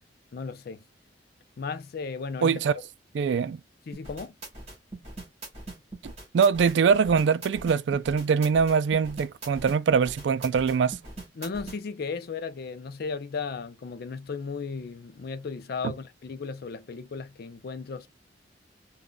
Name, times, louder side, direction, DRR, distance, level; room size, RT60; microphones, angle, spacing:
voice 1, 0.3-0.8 1.6-2.6 3.9-4.3 11.4-18.1, left 5 dB, 55° left, 0.4 m, -35 dB
voice 2, 2.4-2.8 3.1-3.6 6.0-11.0 15.8-15.9, right 6 dB, 70° right, 0.3 m, -23 dB
sound 1, 3.9-11.8, right 2 dB, 35° right, 1.5 m, -41 dB
3.8 x 2.3 x 2.2 m
head